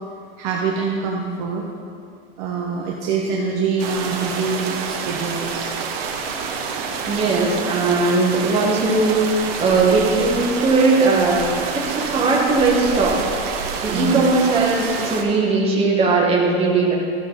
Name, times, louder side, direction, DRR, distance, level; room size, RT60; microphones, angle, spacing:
voice 1, 0.4-1.6 2.4-5.7 13.9-14.2, right 5 dB, 40° right, -1 dB, 0.9 m, -25 dB
sound 1, 3.8-15.2, right 5 dB, 70° right, 1.3 m, -28 dB
voice 2, 7.1-13.2 13.8-16.9, right 3 dB, 20° right, -3 dB, 1.4 m, -19 dB
14.0 x 6.5 x 4.0 m, 2.3 s
supercardioid pair, 170°, 32 cm